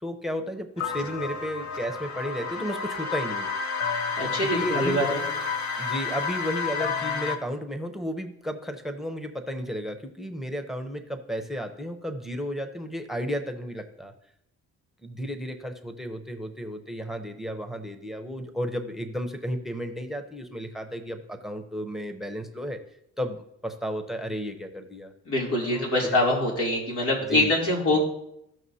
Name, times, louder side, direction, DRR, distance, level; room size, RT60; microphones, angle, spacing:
voice 1, 0.0-3.5 4.4-5.1 5.8-14.1 15.0-22.8 23.2-25.1 25.7-26.4 27.3-27.5 27.9-28.0, equal, ahead, 7 dB, 0.8 m, -33 dB
sound 1, 0.8-7.4, left 5 dB, 65° left, 1.0 m, -30 dB
voice 2, 4.2-5.2 25.3-28.0, left 1 dB, 85° left, -3 dB, 3.1 m, -24 dB
15.5 x 5.9 x 2.8 m, 0.79 s
cardioid pair, 90°, 30 cm